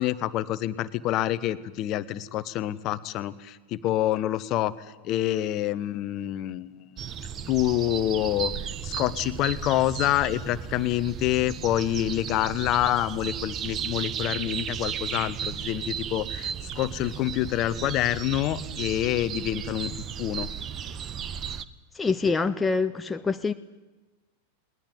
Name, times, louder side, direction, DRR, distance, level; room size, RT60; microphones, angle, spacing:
voice 1, 0.0-6.9 7.5-8.5 8.8-19.9 20.2-20.5, left 14 dB, 35° left, 1.0 m, -27 dB
sound 1, 7.0-21.6, right 8 dB, 30° right, 1.0 m, -35 dB
voice 2, 21.9-23.5, left 4 dB, 10° left, 0.7 m, -25 dB
20.5 x 19.5 x 9.7 m
figure-of-eight pair, 90°, 0 cm